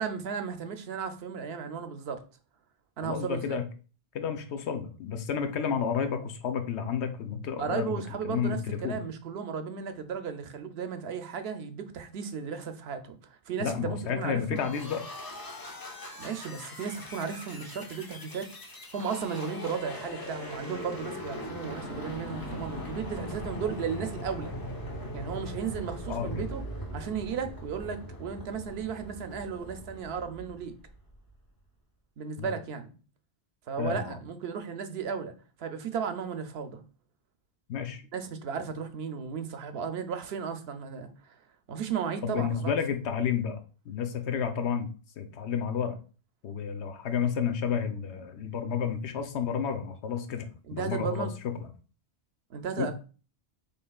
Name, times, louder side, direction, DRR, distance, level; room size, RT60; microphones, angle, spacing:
voice 1, 0.0-2.2 3.0-3.6 7.6-14.6 16.2-18.5 18.9-24.5 25.1-26.6 26.9-30.7 32.2-32.9 33.7-35.3 35.6-36.8 38.1-41.1 41.7-42.7 50.7-51.3 52.5-52.9, right 6 dB, 70° right, 0.8 m, -35 dB
voice 2, 3.0-3.6 4.1-7.9 8.2-9.0 13.6-15.0 26.1-26.5 32.4-32.5 33.8-34.2 37.7-38.0 42.2-43.6 43.9-44.9 45.2-45.9 46.4-51.7 52.8-52.9, left 7 dB, 80° left, 0.9 m, -31 dB
sound 1, 14.5-31.2, equal, 25° left, 0.6 m, -40 dB
5.4 x 3.4 x 2.3 m
omnidirectional pair, 1.1 m